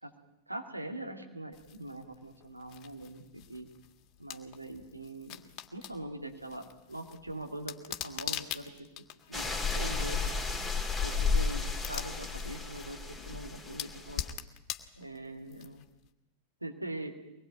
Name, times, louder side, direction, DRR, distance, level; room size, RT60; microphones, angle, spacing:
voice 1, 0.5-3.7 4.2-5.4 5.7-8.7 9.3-10.2 11.0-14.2 15.0-15.8 16.6-17.1, right 1 dB, 85° right, 3 dB, 2.7 m, -42 dB
sound 1, 1.5-16.1, left 11 dB, 35° left, 1.8 m, -45 dB
sound 2, 9.3-14.3, left 4 dB, ahead, 3.2 m, -33 dB
23.5 x 20.5 x 9.2 m, 0.92 s
figure-of-eight pair, 90°, 0 cm